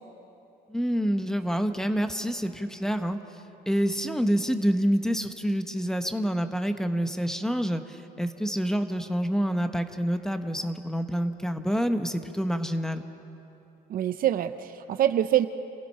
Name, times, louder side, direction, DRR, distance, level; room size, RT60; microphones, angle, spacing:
voice 1, 0.7-3.2 3.7-13.0, equal, 5° left, 7 dB, 1.2 m, -27 dB
voice 2, 13.9-15.5, right 12 dB, 60° right, 11 dB, 0.8 m, -25 dB
29.0 x 16.0 x 5.7 m, 2.8 s
cardioid pair, 110°, 17 cm